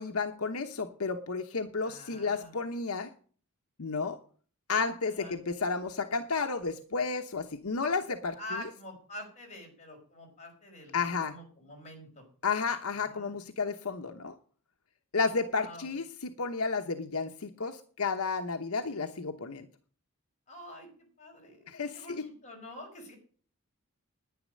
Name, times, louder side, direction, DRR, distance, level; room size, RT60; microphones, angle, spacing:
voice 1, 0.0-3.1 3.8-4.2 4.7-8.6 10.9-11.4 12.4-14.3 15.1-19.7 21.7-22.2, left 4 dB, 75° left, 6 dB, 1.0 m, -32 dB
voice 2, 1.8-2.5 5.1-5.4 8.4-12.2 13.0-13.3 15.5-15.9 20.5-20.9 21.2-23.1, left 1 dB, 30° left, 0 dB, 5.1 m, -46 dB
10.5 x 10.0 x 6.4 m, 0.44 s
head